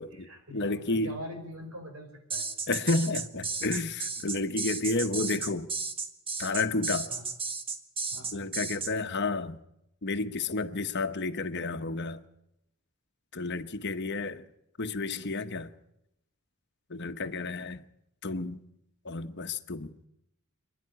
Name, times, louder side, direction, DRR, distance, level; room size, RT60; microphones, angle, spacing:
voice 1, 0.0-2.4 5.2-5.3 5.5-5.6 7.1-7.2 8.1-8.6 17.2-17.3, equal, 85° right, 5.8 m, -43 dB
voice 2, 0.5-1.1 2.7-5.7 6.4-7.1 8.3-9.6 10.0-12.2 13.3-14.5 14.8-15.7 16.9-17.8 18.2-18.6 19.0-19.9, left 3 dB, 55° left, 1.0 m, -31 dB
sound 1, 2.3-8.9, right 4 dB, 25° right, 1.5 m, -34 dB
26.0 x 10.5 x 9.8 m
head